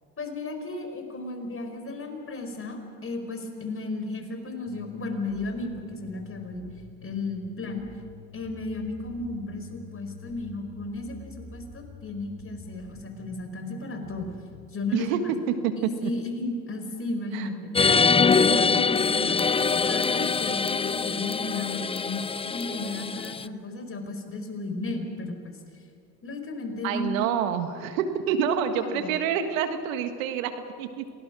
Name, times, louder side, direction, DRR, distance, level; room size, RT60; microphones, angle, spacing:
voice 1, 0.2-6.7 7.0-7.8 8.3-14.4 14.7-15.3 15.8-17.5 18.3-22.2 22.5-25.6 26.2-27.3 28.7-29.1, left 2 dB, 35° left, 5 dB, 4.8 m, -34 dB
sound 1, 4.7-14.7, left 4 dB, 55° left, 7.8 m, -47 dB
voice 2, 14.9-16.1 17.3-17.5 17.8-18.0 26.8-31.1, right 8 dB, 85° right, 8 dB, 1.7 m, -27 dB
sound 2, 17.7-23.4, left 5 dB, 15° left, 0.5 m, -24 dB
27.0 x 18.5 x 6.3 m, 2.3 s
hypercardioid pair, 70°, 40 cm